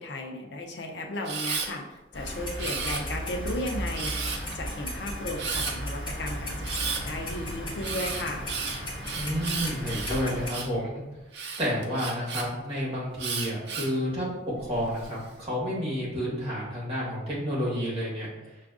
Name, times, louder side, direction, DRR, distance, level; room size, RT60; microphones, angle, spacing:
voice 1, 0.0-8.5, left 1 dB, 75° left, 2 dB, 0.5 m, -35 dB
Camera, 1.2-1.7 2.6-3.3 3.9-4.5 5.4-5.7 6.6-7.0 7.8-10.8 11.3-12.4 13.2-14.0 14.6-15.1, right 5 dB, 70° right, 0.6 m, -33 dB
Clock, 2.1-10.5, equal, 25° left, 1.2 m, -35 dB
voice 2, 9.1-11.0 11.6-14.3 14.6-18.3, equal, 35° right, -6 dB, 1.4 m, -30 dB
6.0 x 2.4 x 2.4 m, 1.0 s
head